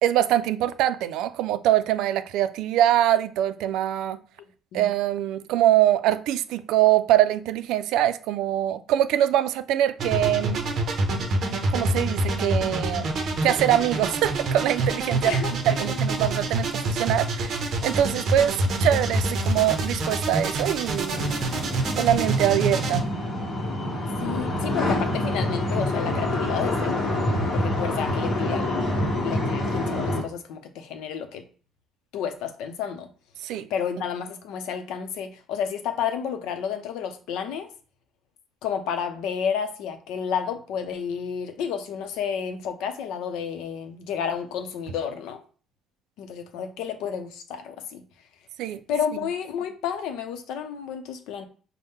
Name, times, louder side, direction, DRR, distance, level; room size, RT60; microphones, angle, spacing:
voice 1, 0.0-4.2 4.7-10.6 11.7-13.1 13.4-15.4 15.7-21.3 22.0-23.0 33.4-33.7 48.6-48.8, right 12 dB, 80° right, 0.3 m, -23 dB
sound 1, 10.0-23.0, right 2 dB, 40° right, 0.6 m, -26 dB
voice 2, 15.2-16.0 24.2-27.3 27.5-31.4 32.1-33.1 33.5-37.7 38.6-45.4 46.2-48.0 48.9-51.5, left 7 dB, 90° left, 0.6 m, -31 dB
sound 2, 21.1-30.2, left 1 dB, 35° left, 1.0 m, -26 dB
5.5 x 2.1 x 3.5 m
cardioid pair, 175°, 0 cm